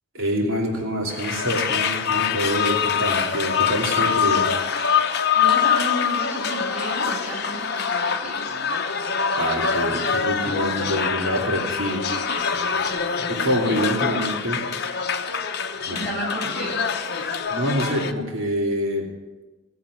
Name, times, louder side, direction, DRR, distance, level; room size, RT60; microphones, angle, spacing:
voice 1, 0.1-4.5 9.4-12.0 12.6-12.9 13.3-14.6 15.9-16.0 17.2-19.0, equal, 75° right, -1 dB, 2.8 m, -26 dB
sound 1, 1.1-18.1, left 6 dB, 50° left, 0.9 m, -24 dB
voice 2, 5.0-8.4 15.9-16.8, equal, 5° right, -7 dB, 7.3 m, -32 dB
17.5 x 7.9 x 9.7 m, 1.2 s
head